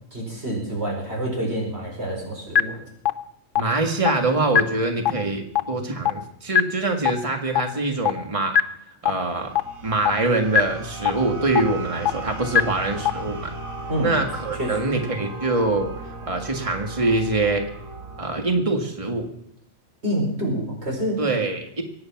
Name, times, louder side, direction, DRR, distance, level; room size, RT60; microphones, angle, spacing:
voice 1, 0.1-2.8 13.9-14.1 14.6-14.9 20.0-21.2, right 1 dB, 50° right, -1 dB, 5.3 m, -27 dB
sound 1, 2.5-2.6 3.0-3.1 3.5-3.6 4.0-4.1 4.5-4.6 5.0-5.1 5.5-5.6 6.0-6.1 6.5-6.6 7.0-7.1 7.5-7.6 8.0-8.1 8.5-8.6 9.0-9.1 9.5-9.6 10.0-10.1 10.5-10.6 11.0-11.1 11.5-11.6 12.0-12.1 12.5-12.6 13.0-13.1, left 9 dB, 70° left, 1.2 m, -17 dB
voice 2, 3.6-8.6 9.0-9.5 9.8-13.5 14.0-15.9 16.3-17.6 18.2-19.3 21.2-21.8, right 2 dB, 25° right, 4 dB, 1.9 m, -24 dB
sound 2, 9.2-18.4, right 3 dB, 80° right, 2.8 m, -36 dB
24.0 x 9.6 x 5.9 m, 0.74 s
omnidirectional pair, 1.4 m